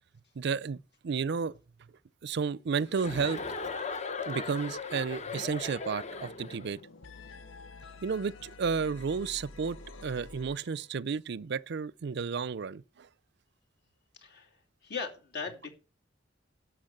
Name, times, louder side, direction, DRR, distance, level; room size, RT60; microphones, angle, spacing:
voice 1, 0.4-1.5 2.2-3.4 4.3-6.8 8.0-13.1, right 5 dB, 60° right, 0.5 m, -32 dB
Chuckle chortle, 3.0-6.7, left 4 dB, 35° left, 0.8 m, -38 dB
sound 1, 5.3-5.7 6.0-11.0, left 2 dB, 80° left, 0.8 m, -49 dB
voice 2, 14.8-15.8, left 5 dB, 60° left, 2.7 m, -38 dB
11.5 x 6.2 x 7.4 m
head